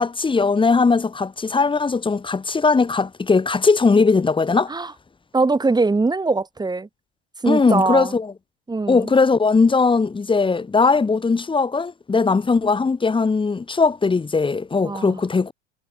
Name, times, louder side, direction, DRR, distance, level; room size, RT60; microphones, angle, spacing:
voice 1, 0.0-4.7 7.5-8.3 8.9-15.5, left 4 dB, 15° left, 2.4 m, -19 dB
voice 2, 5.3-6.9 7.4-8.1 8.7-9.1 14.8-15.2, right 3 dB, 10° right, 4.5 m, -21 dB
figure-of-eight pair, 80°, 33 cm